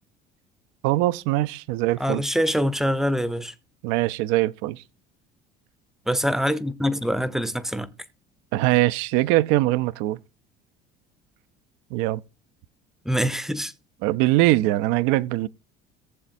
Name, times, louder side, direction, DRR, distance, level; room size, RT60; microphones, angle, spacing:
voice 1, 0.8-2.2 3.8-4.8 8.5-10.2 11.9-12.2 14.0-15.5, right 17 dB, 80° right, 0.4 m, -22 dB
voice 2, 2.0-3.5 6.1-7.9 13.0-13.7, equal, ahead, 0.6 m, -24 dB
18.5 x 7.1 x 2.6 m
supercardioid pair, 100°, 20 cm